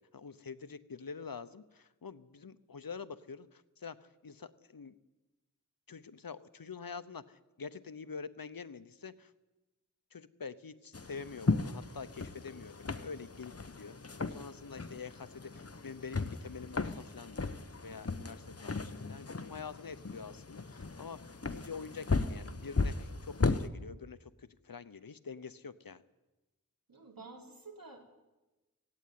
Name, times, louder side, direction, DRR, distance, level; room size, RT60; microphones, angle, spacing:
voice 1, 0.0-4.9 5.9-9.3 10.1-26.0, left 5 dB, 80° left, 14 dB, 0.9 m, -46 dB
Walking on Wood Floor, 10.9-23.7, left 3 dB, 45° left, 1.0 m, -36 dB
voice 2, 26.9-28.0, right 3 dB, 75° right, 2 dB, 3.7 m, -50 dB
17.0 x 16.0 x 9.4 m, 1.1 s
wide cardioid pair, 50°, 35 cm